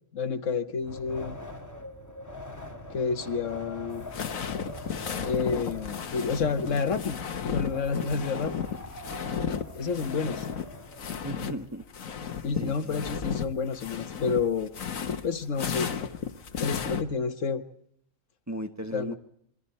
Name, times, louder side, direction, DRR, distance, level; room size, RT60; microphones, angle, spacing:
voice 1, 0.1-1.4 2.9-4.0 5.2-7.2 7.5-8.6 9.7-10.4 12.4-14.7 15.2-16.1 16.6-17.6 18.9-19.2, left 5 dB, 70° left, 10 dB, 1.5 m, -29 dB
Wind, 0.8-11.2, left 1 dB, 15° left, 1.8 m, -43 dB
sound 1, 3.9-11.6 11.8-17.0, left 7 dB, 90° left, 1.6 m, -34 dB
voice 2, 11.2-11.8 12.5-13.2 18.5-19.1, right 1 dB, 15° right, 5 dB, 1.2 m, -36 dB
27.0 x 23.0 x 4.3 m, 0.67 s
omnidirectional pair, 1.3 m